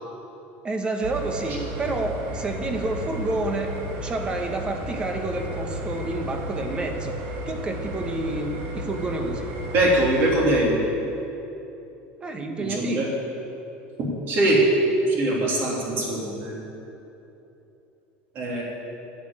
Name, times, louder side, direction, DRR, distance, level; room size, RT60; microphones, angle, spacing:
voice 1, 0.6-3.7 4.0-7.2 7.5-9.5 12.2-13.1, right 2 dB, 20° right, 4 dB, 1.1 m, -29 dB
sound 1, 1.0-10.5, right 1 dB, 60° right, 1.8 m, -33 dB
voice 2, 9.7-10.8 12.6-13.1 14.0-14.6 15.1-16.7 18.3-18.6, right 1 dB, 40° right, -3 dB, 3.1 m, -22 dB
10.5 x 8.7 x 8.6 m, 3.0 s
cardioid pair, 165°, 5 cm